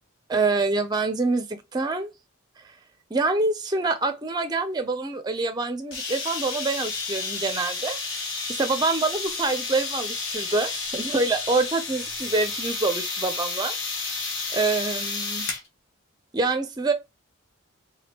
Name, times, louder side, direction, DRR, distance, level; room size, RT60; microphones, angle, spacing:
voice 1, 0.3-2.1 3.1-8.2 8.5-13.7 14.1-14.2 14.5-15.5 16.3-16.9, right 3 dB, 20° right, 0.4 m, -26 dB
sound 1, 5.9-15.7, left 4 dB, 65° left, 1.1 m, -31 dB
3.4 x 3.4 x 2.9 m
head